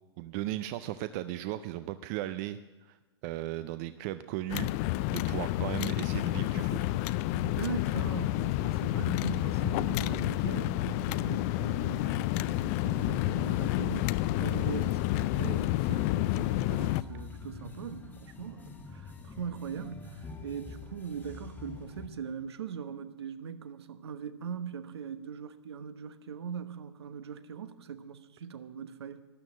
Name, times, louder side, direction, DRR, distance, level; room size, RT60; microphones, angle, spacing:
voice 1, 0.2-3.0 3.2-4.7 5.1-6.8, right 14 dB, 35° right, 0.5 m, -36 dB
sound 1, 4.5-17.0, left 17 dB, 35° left, 0.4 m, -29 dB
voice 2, 7.3-29.2, right 7 dB, 65° right, 1.1 m, -41 dB
sound 2, 12.2-22.1, left 4 dB, 10° left, 1.5 m, -46 dB
12.5 x 11.0 x 7.4 m
hypercardioid pair, 125°, 14 cm